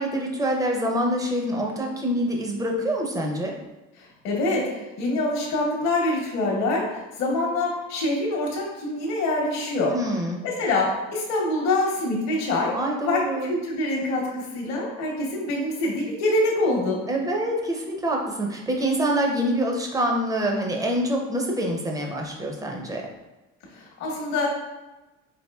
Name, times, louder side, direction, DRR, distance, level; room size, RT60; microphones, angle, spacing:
voice 1, 0.0-3.5 9.9-10.4 12.7-13.5 17.1-23.0, right 1 dB, 10° right, 0 dB, 0.5 m, -26 dB
voice 2, 4.0-9.9 10.4-12.8 13.1-17.0 23.7-24.5, left 2 dB, 65° left, -2 dB, 0.9 m, -25 dB
4.2 x 2.6 x 2.2 m, 1.1 s
cardioid pair, 130°, 29 cm